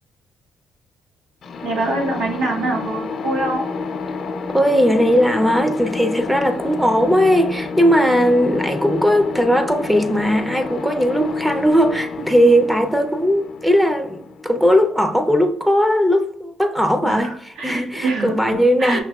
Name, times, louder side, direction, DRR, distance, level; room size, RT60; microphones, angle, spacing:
sound 1, 1.4-15.1, left 4 dB, 60° left, 0.4 m, -29 dB
voice 1, 1.6-3.6 17.0-19.0, right 2 dB, 80° right, 0.9 m, -25 dB
voice 2, 4.5-19.0, equal, 5° right, 0.5 m, -18 dB
5.7 x 2.7 x 2.3 m
cardioid pair, 90°, 0 cm